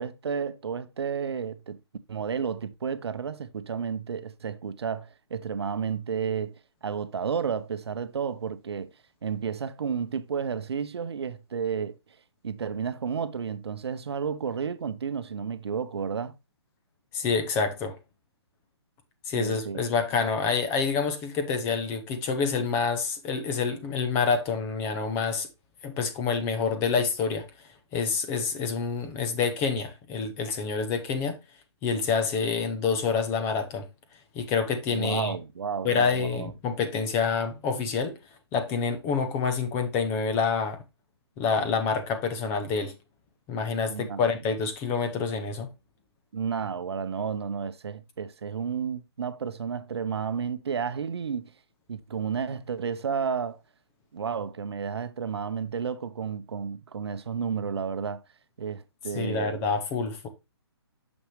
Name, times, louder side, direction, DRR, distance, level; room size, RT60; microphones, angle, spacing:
voice 1, 0.0-1.8 2.1-8.9 9.2-12.0 12.4-16.3 19.3-19.8 34.9-36.5 43.9-44.2 46.3-51.5 51.9-53.6 54.1-58.2 58.6-59.6, right 6 dB, 70° right, 0.8 m, -32 dB
voice 2, 17.1-17.9 19.3-25.5 25.8-27.5 27.9-31.4 31.8-33.9 34.3-35.3 35.8-38.2 38.5-40.8 41.4-42.9 43.5-45.7 59.1-60.3, left 5 dB, 15° left, 0.9 m, -27 dB
6.3 x 6.1 x 3.2 m
hypercardioid pair, 155°, 14 cm